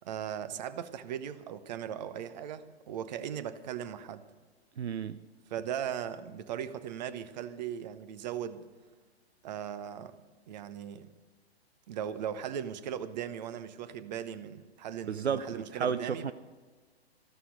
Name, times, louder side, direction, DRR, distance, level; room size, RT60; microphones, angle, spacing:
voice 1, 0.0-4.3 5.5-8.7 9.4-10.2 10.5-11.1 11.9-16.3, right 9 dB, 40° right, 13 dB, 1.0 m, -38 dB
voice 2, 4.8-5.2 15.1-16.3, right 7 dB, 75° right, 13 dB, 0.7 m, -32 dB
14.0 x 13.0 x 5.1 m, 1.4 s
figure-of-eight pair, 120°, 33 cm